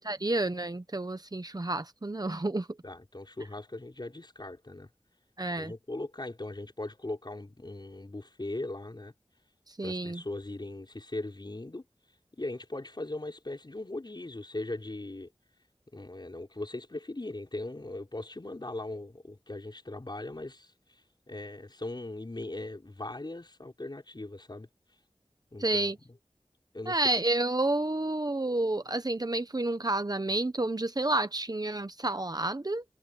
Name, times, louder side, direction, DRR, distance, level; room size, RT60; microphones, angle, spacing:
voice 1, 0.0-2.7 5.4-5.7 9.7-10.2 25.6-26.0 26.9-32.8, right 2 dB, 40° right, 1.2 m, -30 dB
voice 2, 2.8-4.9 5.5-9.1 9.8-11.8 12.4-15.3 15.9-21.0 21.3-24.7 25.5-26.1 26.7-27.1, left 2 dB, 45° left, 5.9 m, -39 dB
wide cardioid pair, 45°, 10 cm